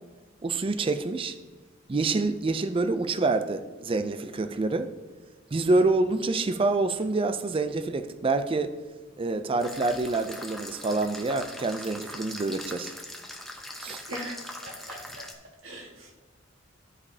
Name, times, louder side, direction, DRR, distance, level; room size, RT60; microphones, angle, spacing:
voice 1, 0.4-1.4 1.9-4.9 5.5-8.7 9.2-12.9 13.8-14.0, right 3 dB, 25° right, 10 dB, 0.4 m, -27 dB
sound 1, 9.6-15.3, left 1 dB, ahead, 0.7 m, -41 dB
voice 2, 14.1-15.2 15.6-16.2, equal, 80° right, -1 dB, 1.8 m, -40 dB
13.5 x 5.0 x 2.8 m, 1.2 s
head